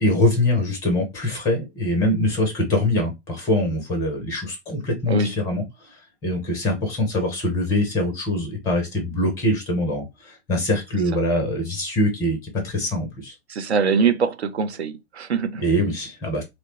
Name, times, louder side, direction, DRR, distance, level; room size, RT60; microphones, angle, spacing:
voice 1, 0.0-6.0 6.2-13.3 15.6-16.4, left 1 dB, 10° left, 0.4 m, -23 dB
voice 2, 13.5-15.6, right 5 dB, 75° right, 0.5 m, -22 dB
3.0 x 2.1 x 2.8 m
figure-of-eight pair, 110°, 34 cm